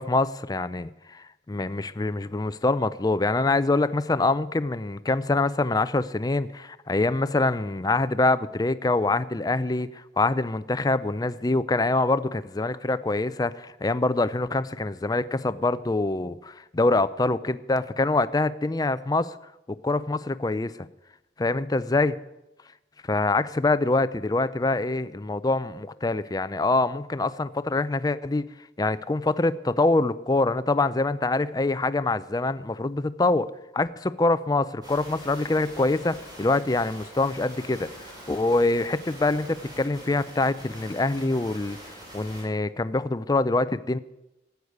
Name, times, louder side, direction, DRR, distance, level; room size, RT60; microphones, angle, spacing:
voice 1, 0.0-19.4 19.7-20.9 21.4-22.2 23.0-28.5 28.8-33.5 33.7-44.0, left 2 dB, 20° left, 14 dB, 0.5 m, -25 dB
sound 1, 34.8-42.4, equal, 25° right, 5.8 m, -44 dB
13.5 x 8.1 x 9.5 m, 0.95 s
head